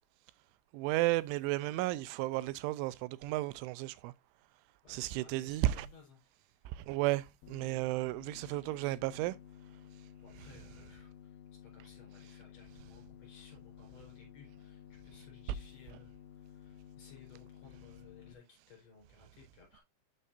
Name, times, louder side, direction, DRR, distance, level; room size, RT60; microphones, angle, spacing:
voice 1, 0.7-4.1 4.9-5.9 6.7-9.3, right 17 dB, 90° right, 3.0 m, -33 dB
voice 2, 4.8-6.7 8.4-9.0 10.2-19.8, left 5 dB, 40° left, 5.1 m, -60 dB
sound 1, 7.4-18.3, left 10 dB, 85° left, 2.9 m, -54 dB
8.7 x 6.8 x 2.5 m
omnidirectional pair, 5.4 m